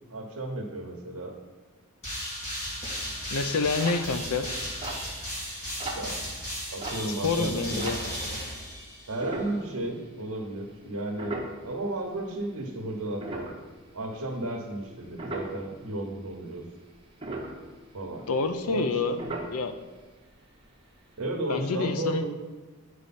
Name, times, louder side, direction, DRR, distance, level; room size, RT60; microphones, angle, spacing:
voice 1, 0.1-1.3 5.9-6.1 6.7-7.9 9.1-11.3 11.6-13.5 13.9-16.6 17.9-18.2 18.6-18.8 21.2-22.3, right 1 dB, 75° right, 1 dB, 1.0 m, -33 dB
sound 1, 2.0-9.3, equal, 30° left, 2.5 m, -35 dB
sound 2, 3.2-8.4 9.2-10.2 10.5-10.7 11.1-12.4 12.8-15.7 16.1-16.6 16.9-18.9 19.2-20.0 20.3-20.4 20.6-20.9 21.2-21.3, right 2 dB, 25° right, 1.1 m, -38 dB
voice 2, 3.3-4.5 7.2-8.0 18.3-19.7 21.5-22.2, left 4 dB, 75° left, 9 dB, 0.6 m, -28 dB
9.4 x 4.9 x 4.2 m, 1.3 s
head